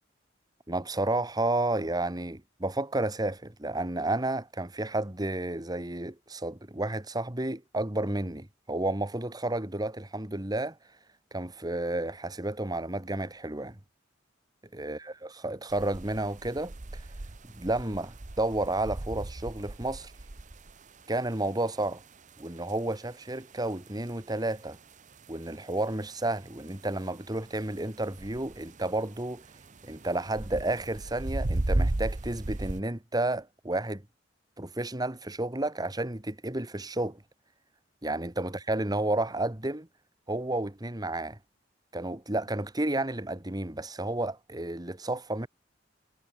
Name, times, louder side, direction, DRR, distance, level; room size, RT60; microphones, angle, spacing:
voice 1, 0.7-10.8 11.3-13.8 14.7-17.0 17.4-20.1 21.1-22.0 22.4-24.8 25.3-29.4 29.8-34.0 34.6-37.2 38.0-39.9 40.3-41.4 41.9-45.5, right 2 dB, 20° right, 1.6 m, -31 dB
sound 1, 15.7-32.8, right 2 dB, 40° right, 0.9 m, -36 dB
head